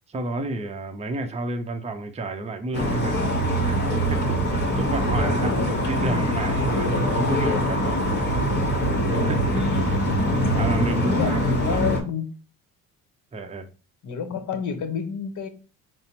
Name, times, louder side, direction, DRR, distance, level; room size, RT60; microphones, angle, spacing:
voice 1, 0.1-8.3 9.1-9.7 10.6-11.9 13.3-13.7, right 2 dB, 15° right, 0.6 m, -31 dB
sound 1, 2.7-12.0, equal, 25° left, 1.2 m, -23 dB
voice 2, 11.6-12.3 14.0-15.5, left 7 dB, 50° left, 0.9 m, -28 dB
4.1 x 2.0 x 3.9 m
supercardioid pair, 65°, 39 cm